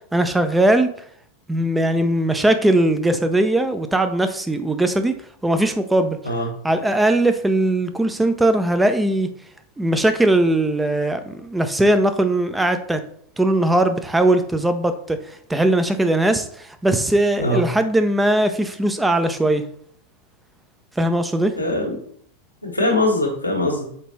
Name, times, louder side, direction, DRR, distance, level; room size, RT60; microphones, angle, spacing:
voice 1, 0.1-0.9 1.5-5.2 5.4-6.2 6.6-9.3 9.8-13.0 13.4-15.2 15.5-19.6 21.0-21.5, right 1 dB, 5° right, 8 dB, 0.6 m, -19 dB
voice 2, 21.6-21.9 22.6-23.9, left 1 dB, 85° left, -1 dB, 1.6 m, -21 dB
6.6 x 5.0 x 3.2 m, 0.62 s
figure-of-eight pair, 90°, 0 cm